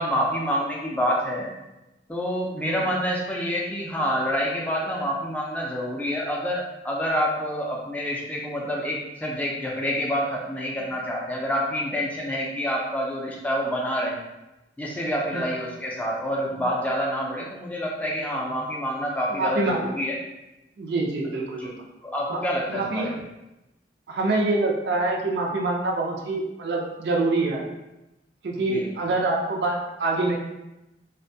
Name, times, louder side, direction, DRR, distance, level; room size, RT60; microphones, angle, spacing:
voice 1, 0.0-1.5 2.1-14.2 14.8-20.2 21.6-21.7 22.0-23.2 28.6-28.9, equal, 10° left, -3 dB, 0.4 m, -27 dB
voice 2, 19.3-19.9 20.8-21.7 22.3-22.4 22.7-23.1 24.1-27.6 28.4-30.4, right 2 dB, 70° right, 0 dB, 0.4 m, -25 dB
2.5 x 2.1 x 2.6 m, 0.96 s
head